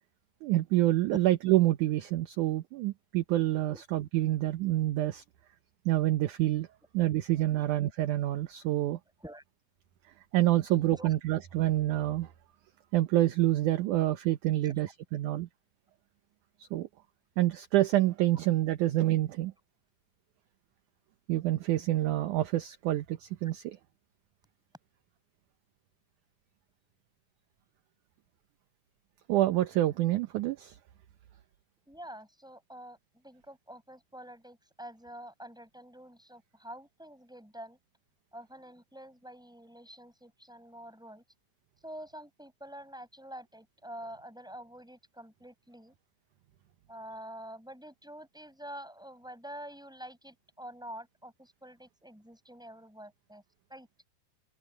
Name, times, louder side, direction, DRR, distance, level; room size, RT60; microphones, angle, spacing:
voice 1, 0.4-5.2 5.9-6.7 6.9-9.0 10.3-12.3 12.9-15.5 16.6-16.9 17.4-19.5 21.3-23.8 29.3-30.8, right 15 dB, 70° right, 2.1 m, -27 dB
voice 2, 10.7-11.1 14.6-14.7 31.9-37.8 38.3-41.2 41.8-45.9 46.9-53.4 53.7-53.9, equal, ahead, 7.5 m, -47 dB
open air
omnidirectional pair, 4.1 m